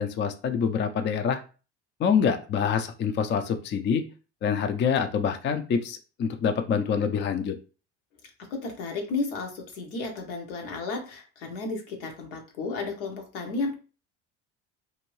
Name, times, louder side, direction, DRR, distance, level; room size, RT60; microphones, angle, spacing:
voice 1, 0.0-1.4 2.0-4.1 4.4-7.6, left 6 dB, 30° left, 7 dB, 0.4 m, -26 dB
voice 2, 8.5-13.7, left 3 dB, 80° left, 2 dB, 1.0 m, -33 dB
2.7 x 2.6 x 3.1 m, 0.35 s
hypercardioid pair, 75°, 35 cm